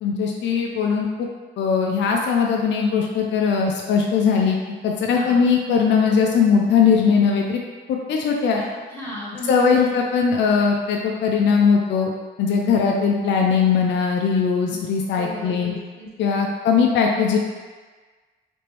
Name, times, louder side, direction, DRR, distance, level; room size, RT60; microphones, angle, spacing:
voice 1, 0.0-1.3 1.6-4.6 4.8-7.6 7.9-8.6 9.5-12.1 12.4-15.8 16.2-17.4, left 6 dB, 65° left, 0 dB, 0.5 m, -20 dB
voice 2, 5.1-5.5 8.5-9.8 15.1-16.1 16.4-16.5, equal, 10° left, -9 dB, 1.1 m, -36 dB
3.2 x 2.9 x 3.0 m, 1.4 s
cardioid pair, 90°, 20 cm